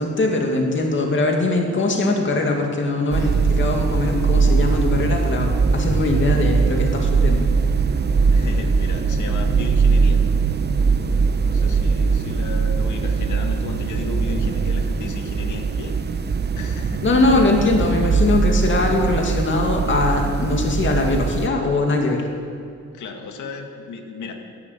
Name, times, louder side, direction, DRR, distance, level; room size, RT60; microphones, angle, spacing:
voice 1, 0.0-7.4 17.0-22.3, left 2 dB, 40° left, 1 dB, 2.4 m, -21 dB
sound 1, 3.1-21.5, right 5 dB, 35° right, 0.9 m, -20 dB
voice 2, 8.3-10.2 11.4-16.0 16.3-17.0 22.9-24.3, left 4 dB, 75° left, 4 dB, 2.1 m, -34 dB
14.5 x 11.0 x 8.7 m, 2.4 s
cardioid pair, 90°, 30 cm